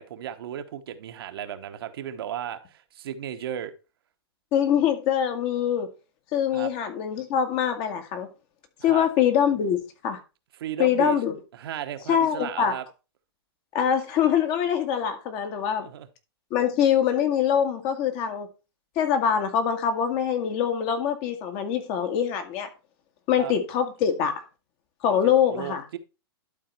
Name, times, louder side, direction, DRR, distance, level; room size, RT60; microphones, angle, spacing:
voice 1, 0.0-3.7 6.5-6.7 8.8-9.1 10.6-11.2 11.5-12.9 15.8-16.1 23.4-23.5 25.2-26.0, right 10 dB, 65° right, 1.2 m, -35 dB
voice 2, 4.5-5.9 6.3-8.3 8.8-10.2 10.8-11.4 12.1-12.7 13.7-15.9 16.5-18.5 19.0-22.7 23.3-24.4 25.0-25.8, left 8 dB, 40° left, 1.9 m, -24 dB
12.0 x 4.0 x 4.5 m
hypercardioid pair, 125°, 13 cm